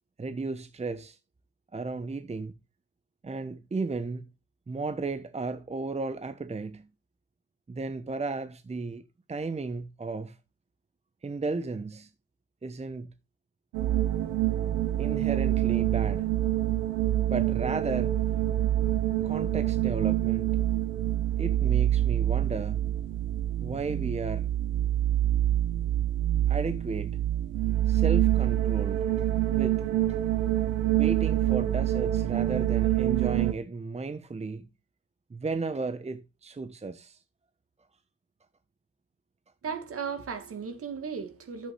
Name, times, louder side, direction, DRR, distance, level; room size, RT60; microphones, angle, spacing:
voice 1, 0.2-1.2 1.7-2.5 3.2-4.2 4.7-6.9 7.7-10.4 11.2-12.1 12.6-13.1 15.0-16.3 17.3-18.2 19.2-20.6 21.4-22.9 23.6-24.5 26.5-27.2 27.9-29.8 30.1-30.2 30.9-34.7 35.3-37.2, right 3 dB, 20° right, 1.0 m, -34 dB
sound 1, 13.7-33.5, right 13 dB, 75° right, 1.2 m, -26 dB
voice 2, 39.6-41.7, right 6 dB, 50° right, 2.5 m, -36 dB
11.0 x 8.5 x 3.4 m
hypercardioid pair, 50°, 30 cm